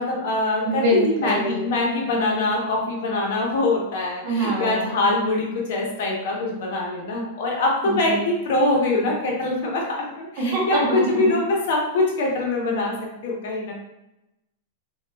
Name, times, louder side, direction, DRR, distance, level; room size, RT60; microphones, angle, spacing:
voice 1, 0.0-12.9 13.2-13.7, left 2 dB, 65° left, -1 dB, 0.8 m, -23 dB
voice 2, 0.6-1.7 4.2-5.0 7.8-8.2 10.4-11.3, right 1 dB, 50° right, -2 dB, 1.2 m, -25 dB
3.9 x 2.3 x 2.2 m, 0.91 s
supercardioid pair, 140°, 0 cm